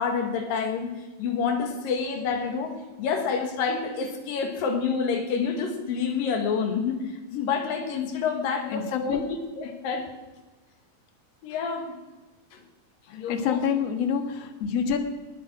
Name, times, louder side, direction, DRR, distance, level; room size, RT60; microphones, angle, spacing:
voice 1, 0.0-7.0 7.3-9.2 9.6-10.1 11.4-12.0 12.5-12.6 13.1-13.6, left 5 dB, 80° left, 6 dB, 3.4 m, -28 dB
voice 2, 8.7-9.2 13.1-15.0, left 7 dB, 55° left, 7 dB, 2.2 m, -27 dB
19.5 x 9.4 x 6.2 m, 1.2 s
omnidirectional pair, 3.9 m